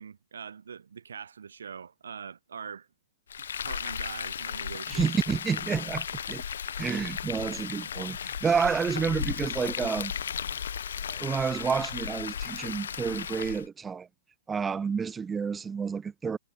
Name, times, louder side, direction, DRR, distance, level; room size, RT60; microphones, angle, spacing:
voice 1, 0.0-2.9 3.6-5.0, right 6 dB, 85° right, 1.1 m, -42 dB
Frying (food), 3.3-13.7, left 8 dB, 80° left, 0.7 m, -35 dB
voice 2, 4.9-6.4 6.8-10.1 11.1-14.1 14.5-16.4, right 6 dB, 15° right, 0.4 m, -29 dB
hypercardioid pair, 130°, 0 cm